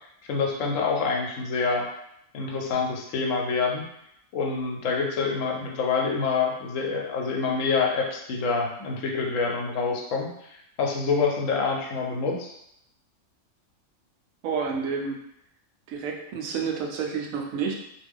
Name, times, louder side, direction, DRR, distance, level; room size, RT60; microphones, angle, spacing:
voice 1, 0.3-1.8 2.3-3.8 4.3-12.5, left 4 dB, 80° left, 0 dB, 0.9 m, -26 dB
voice 2, 14.4-15.2 15.9-17.8, right 5 dB, 85° right, 1 dB, 1.0 m, -29 dB
2.5 x 2.2 x 3.4 m, 0.78 s
omnidirectional pair, 1.4 m